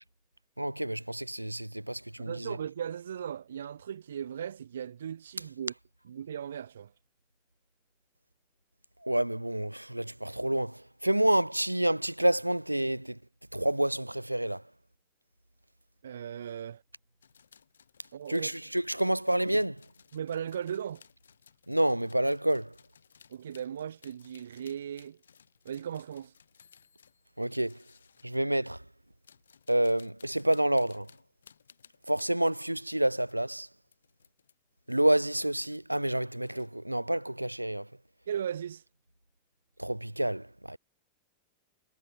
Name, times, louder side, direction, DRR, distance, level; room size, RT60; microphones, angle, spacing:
voice 1, 0.6-2.6 9.0-13.2 13.5-14.6 18.3-19.8 21.7-22.7 27.4-27.8 28.2-28.8 29.7-31.1 32.1-33.7 34.9-37.9 39.8-40.8, right 1 dB, 85° right, 0.5 m, -28 dB
voice 2, 2.2-5.7 6.0-6.9 16.0-16.8 18.1-18.5 19.0-19.1 20.1-21.0 23.3-25.2 25.6-26.3 38.3-38.8, right 9 dB, 65° right, 1.3 m, -37 dB
sound 1, 17.2-28.4 29.1-33.5 33.9-34.6 34.8-35.8 36.1-36.9, left 7 dB, 70° left, 6.0 m, -61 dB
figure-of-eight pair, 90°, 0 cm